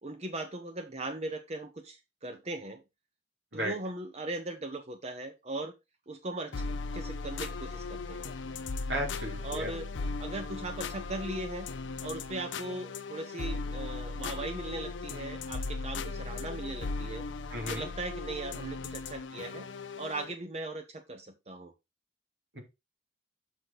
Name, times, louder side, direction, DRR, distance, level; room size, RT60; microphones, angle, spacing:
voice 1, 0.0-2.8 3.5-5.7 6.1-6.6 6.9-8.3 9.4-9.9 10.2-11.7 12.0-17.2 17.7-19.7 20.0-21.7, right 2 dB, 35° right, 7 dB, 0.8 m, -39 dB
sound 1, 6.5-20.4, left 3 dB, 90° left, 0.6 m, -37 dB
voice 2, 8.9-9.7 17.5-17.9 22.5-22.6, right 1 dB, 70° right, 2 dB, 2.8 m, -34 dB
6.5 x 6.4 x 3.9 m, 0.24 s
head